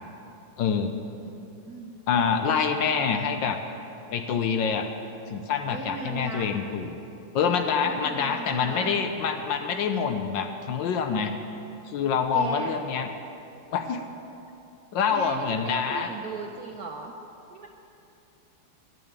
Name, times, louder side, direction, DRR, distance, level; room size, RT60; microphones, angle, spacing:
voice 1, 0.6-0.9 2.1-3.6 4.1-4.9 5.3-6.9 7.3-11.4 11.9-13.1 13.7-14.0 14.9-16.1, left 6 dB, 70° left, 6 dB, 1.3 m, -26 dB
voice 2, 1.2-2.0 5.7-6.5 7.8-8.9 12.3-12.8 15.1-17.2 17.5-17.7, right 4 dB, 65° right, 2 dB, 0.9 m, -37 dB
12.0 x 7.0 x 8.8 m, 2.8 s
omnidirectional pair, 2.3 m